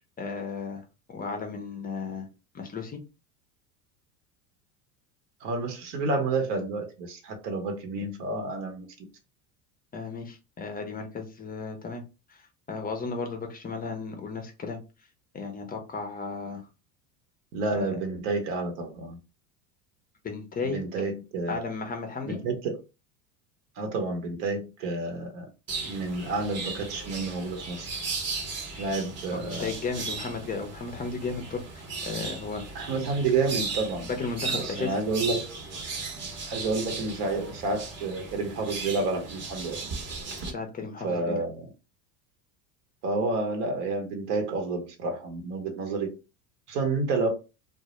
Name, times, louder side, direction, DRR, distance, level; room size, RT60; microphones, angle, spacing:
voice 1, 0.2-2.3 2.5-3.0 9.9-12.0 12.3-14.8 15.3-16.6 17.7-18.0 20.2-20.8 21.5-22.4 29.3-31.6 32.0-32.9 34.0-35.0 40.4-41.4, left 4 dB, 20° left, 0.5 m, -34 dB
voice 2, 5.4-8.9 17.5-19.2 20.6-21.6 22.2-22.8 23.8-25.5 25.8-27.9 28.8-29.7 32.7-34.1 34.6-35.5 36.5-39.8 41.0-41.7 43.0-46.2 46.7-47.3, right 3 dB, 70° right, 0.8 m, -29 dB
sound 1, 25.7-40.5, right 4 dB, 30° right, 0.8 m, -36 dB
2.1 x 2.1 x 2.9 m
hypercardioid pair, 90°, 50 cm